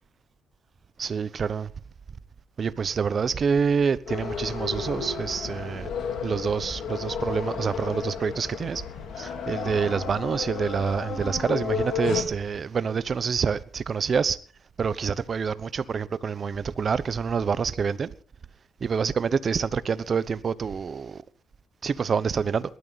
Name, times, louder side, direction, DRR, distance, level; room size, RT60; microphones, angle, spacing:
voice 1, 1.0-1.7 2.6-5.9 6.2-8.8 9.2-14.4 14.8-18.1 18.8-21.1 21.8-22.6, right 6 dB, 45° right, 1.0 m, -27 dB
sound 1, 4.1-12.2, left 6 dB, 70° left, 3.7 m, -32 dB
19.0 x 13.0 x 4.1 m
cardioid pair, 90°, 0 cm